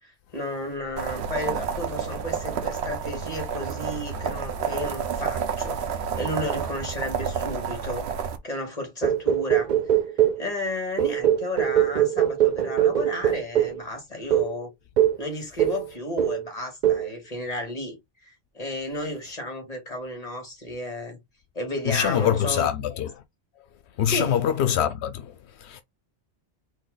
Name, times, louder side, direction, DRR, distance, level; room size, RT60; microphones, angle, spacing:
voice 1, 0.0-8.1 8.4-9.7 10.2-14.7 15.2-21.2 21.5-22.7 24.1-24.4, left 1 dB, 35° left, 2.2 m, -33 dB
sound 1, 1.0-8.4, right 6 dB, 75° right, 1.1 m, -30 dB
sound 2, 9.0-10.5 11.0-13.8 14.3-14.5 15.0-15.2 15.6-15.9 16.2-16.5 16.8-17.1, right 11 dB, 55° right, 0.5 m, -22 dB
voice 2, 21.9-23.1 24.0-25.8, left 9 dB, 85° left, 0.9 m, -24 dB
4.4 x 3.1 x 3.8 m
omnidirectional pair, 1.1 m